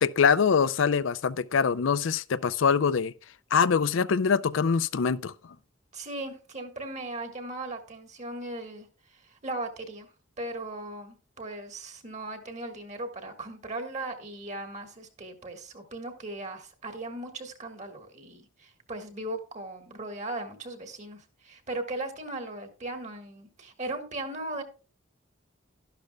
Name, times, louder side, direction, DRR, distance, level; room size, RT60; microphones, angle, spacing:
voice 1, 0.0-3.1 3.5-5.3, left 6 dB, 75° left, 0.5 m, -24 dB
voice 2, 5.9-10.1 10.4-24.6, right 2 dB, 35° right, 1.7 m, -38 dB
12.0 x 11.5 x 2.3 m
head